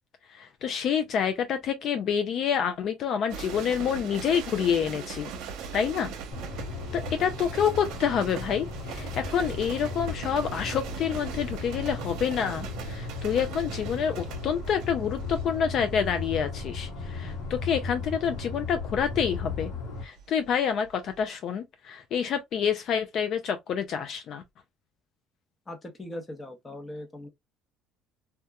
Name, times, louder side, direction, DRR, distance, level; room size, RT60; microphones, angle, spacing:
voice 1, 0.3-5.3 5.7-6.1 6.9-19.7 20.0-24.4, left 7 dB, 50° left, 0.3 m, -28 dB
sound 1, 3.3-20.5 20.8-21.2, right 6 dB, 75° right, 0.7 m, -40 dB
sound 2, 6.3-20.0, left 4 dB, 75° left, 1.0 m, -36 dB
voice 2, 25.7-27.3, left 1 dB, 20° left, 0.7 m, -40 dB
2.8 x 2.2 x 2.2 m
cardioid pair, 125°, 0 cm